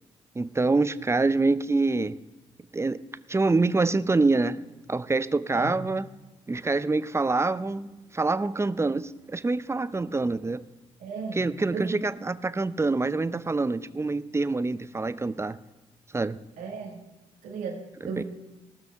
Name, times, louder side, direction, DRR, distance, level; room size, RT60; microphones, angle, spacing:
voice 1, 0.4-2.2 2.7-4.6 4.9-6.1 6.5-10.6 11.3-15.6 16.1-16.4 18.2-18.3, right 3 dB, 20° right, 15 dB, 0.6 m, -26 dB
voice 2, 11.0-12.0 16.6-17.0 17.4-18.2, right 5 dB, 80° right, 3 dB, 1.9 m, -35 dB
17.5 x 6.2 x 5.7 m, 1.1 s
supercardioid pair, 50°, 13 cm